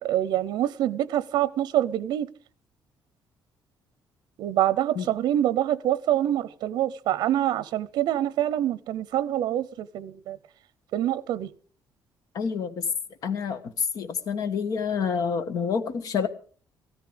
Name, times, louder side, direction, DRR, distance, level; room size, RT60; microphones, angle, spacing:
voice 1, 0.0-2.3 4.4-10.4 10.9-11.5, right 12 dB, 80° right, 0.6 m, -25 dB
voice 2, 12.3-12.8 13.2-13.6 13.9-16.3, left 6 dB, 55° left, 1.5 m, -28 dB
16.0 x 14.0 x 5.2 m
cardioid pair, 160°, 7 cm